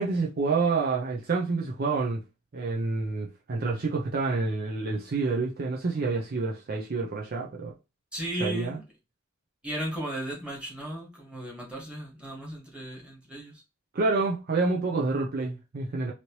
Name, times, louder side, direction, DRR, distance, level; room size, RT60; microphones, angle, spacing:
voice 1, 0.0-2.2 2.5-7.7 8.4-8.8 13.9-16.1, right 3 dB, 50° right, 0.5 m, -28 dB
voice 2, 8.1-8.8 9.6-13.5, right 1 dB, 5° right, 1.4 m, -35 dB
3.1 x 2.8 x 2.9 m
head